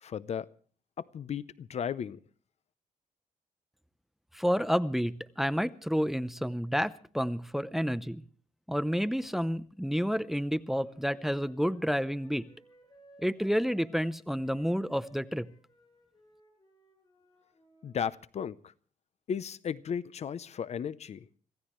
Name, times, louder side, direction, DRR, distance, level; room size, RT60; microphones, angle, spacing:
voice 1, 0.0-0.5 1.0-2.2 17.8-18.7 19.3-21.3, left 7 dB, 55° left, 0.6 m, -35 dB
voice 2, 4.3-8.2 8.7-12.5 13.2-15.5, equal, ahead, 0.7 m, -30 dB
Wind instrument woodwind instrument, 10.7-18.1, right 1 dB, 30° left, 7.8 m, -61 dB
26.0 x 16.0 x 3.1 m
cardioid pair, 120°, 14 cm